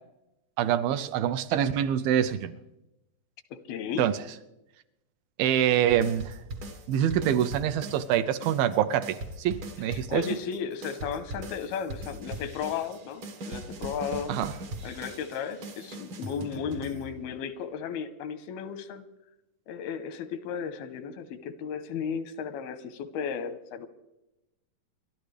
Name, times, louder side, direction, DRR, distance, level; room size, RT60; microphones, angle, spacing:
voice 1, 0.6-2.5 4.0-4.2 5.4-6.3 6.9-10.2 14.3-14.5, right 10 dB, 80° right, 10 dB, 2.4 m, -25 dB
voice 2, 3.5-4.1 9.9-14.3 14.8-19.1 19.7-23.9, left 7 dB, 90° left, 11 dB, 2.8 m, -34 dB
sound 1, 5.9-8.2 8.4-17.4, right 1 dB, 60° right, 1.3 m, -40 dB
27.5 x 12.0 x 3.3 m, 0.94 s
omnidirectional pair, 4.2 m